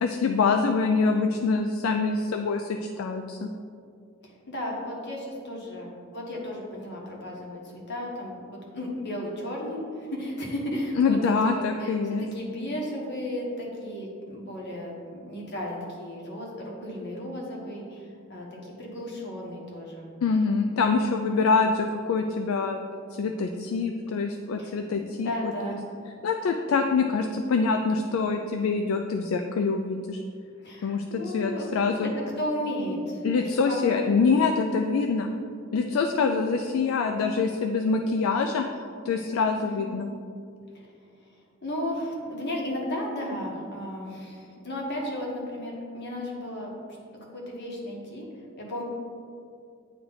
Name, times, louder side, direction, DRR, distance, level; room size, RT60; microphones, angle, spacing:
voice 1, 0.0-3.5 11.0-12.2 20.2-25.8 26.2-30.2 30.8-32.1 33.2-35.3 35.7-38.7 39.1-40.1, left 4 dB, 75° left, 5 dB, 0.3 m, -25 dB
voice 2, 4.2-7.6 7.9-20.1 20.9-21.0 24.6-25.9 30.6-34.0 39.5-39.8 40.7-40.9 41.6-47.0 47.3-48.3 48.6-48.8, left 1 dB, 55° left, -2 dB, 1.3 m, -34 dB
9.2 x 3.2 x 3.9 m, 2.4 s
head